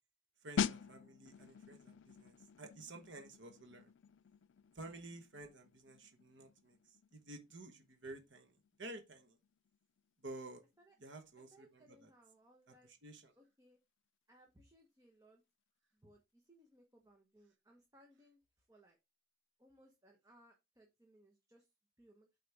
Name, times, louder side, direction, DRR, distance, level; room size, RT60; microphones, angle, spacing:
voice 1, 0.4-3.9 4.7-9.4 10.2-10.6 11.0-12.1 12.7-13.3, right 2 dB, 65° right, 1.2 m, -52 dB
sound 1, 0.6-11.1 11.3-11.6, left 7 dB, 70° left, 0.4 m, -45 dB
voice 2, 11.4-12.9 13.4-13.8 14.3-15.4 15.9-19.0 19.6-21.7 22.0-22.3, right 1 dB, 15° right, 1.1 m, -66 dB
8.1 x 4.2 x 3.4 m
head